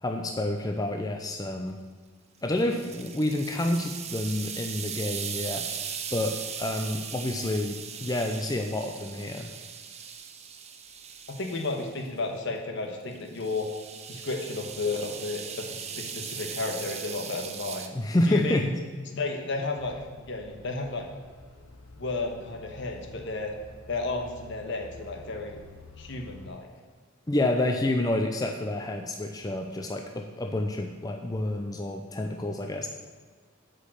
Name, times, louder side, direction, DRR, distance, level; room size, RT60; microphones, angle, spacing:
voice 1, 0.0-1.8 2.4-5.6 6.1-9.5 17.9-18.6 27.3-32.9, left 1 dB, 20° left, 4 dB, 0.5 m, -29 dB
sound 1, 2.4-12.0 13.1-17.9, right 7 dB, 30° right, 0.7 m, -39 dB
voice 2, 11.3-13.7 14.1-17.9 18.2-18.7 19.1-21.1 22.0-23.5 23.9-25.6 26.0-26.7, left 3 dB, 60° left, 2 dB, 1.3 m, -32 dB
sound 2, 19.8-26.5, left 2 dB, 80° left, 1.0 m, -49 dB
8.3 x 5.3 x 7.6 m, 1.5 s
head